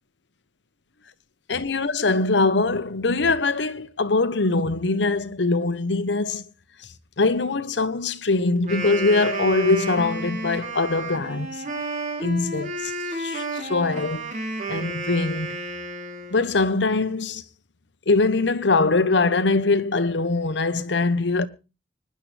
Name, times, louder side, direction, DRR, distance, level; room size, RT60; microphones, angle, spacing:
voice 1, 1.5-6.4 7.2-11.6 12.2-12.9 13.2-14.3 14.7-15.6 16.3-17.4 18.1-21.5, left 3 dB, 75° left, 1.0 m, -22 dB
Wind instrument woodwind instrument, 8.6-16.6, right 2 dB, 45° right, 3.4 m, -31 dB
25.0 x 10.5 x 3.4 m
head